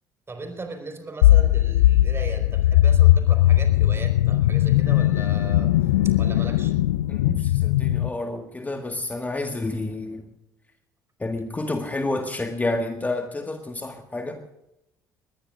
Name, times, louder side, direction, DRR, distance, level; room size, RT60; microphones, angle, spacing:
voice 1, 0.3-5.7 6.0-6.7, right 3 dB, 25° right, 6 dB, 4.7 m, -37 dB
sound 1, 1.2-8.1, left 14 dB, 75° left, 0.4 m, -19 dB
voice 2, 7.1-10.2 11.2-14.4, left 2 dB, 15° left, 5 dB, 1.7 m, -29 dB
21.0 x 20.5 x 2.5 m, 0.85 s
figure-of-eight pair, 55°, 10 cm